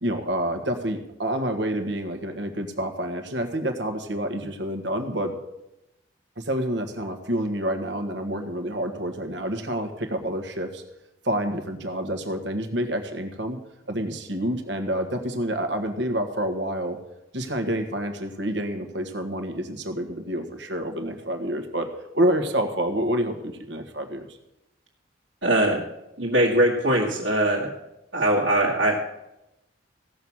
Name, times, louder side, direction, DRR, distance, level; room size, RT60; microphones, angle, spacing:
voice 1, 0.0-5.4 6.4-10.8 11.2-13.6 13.9-17.0 17.3-21.9 22.1-24.4, right 1 dB, 70° right, 6 dB, 1.6 m, -28 dB
voice 2, 25.4-25.8 26.2-27.7 28.1-28.9, right 1 dB, 85° right, -5 dB, 1.9 m, -21 dB
16.0 x 6.3 x 7.3 m, 0.90 s
head